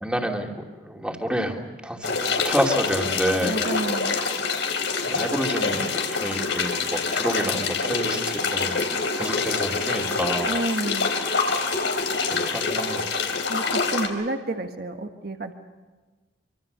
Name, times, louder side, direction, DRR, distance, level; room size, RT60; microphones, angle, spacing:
voice 1, 0.0-3.6 5.0-8.8 9.2-10.5 12.1-13.3, equal, 5° right, 1 dB, 2.7 m, -28 dB
sound 1, 2.0-14.1, left 4 dB, 90° left, 3.7 m, -26 dB
voice 2, 3.5-4.2 10.5-11.1 13.5-15.5, right 2 dB, 55° right, 5 dB, 1.6 m, -30 dB
sound 2, 8.2-9.3 9.8-10.9 11.4-12.6, left 3 dB, 55° left, 5.3 m, -39 dB
26.5 x 25.0 x 6.9 m, 1.3 s
head